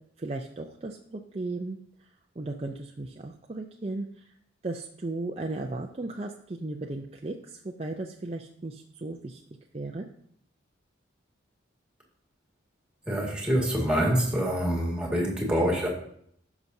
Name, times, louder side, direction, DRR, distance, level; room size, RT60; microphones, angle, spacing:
voice 1, 0.2-1.8 2.4-4.3 4.6-9.4 9.7-10.1, right 2 dB, 30° right, 2 dB, 0.5 m, -36 dB
voice 2, 13.1-15.9, equal, 5° right, -2 dB, 2.0 m, -26 dB
15.5 x 6.0 x 2.7 m, 0.67 s
head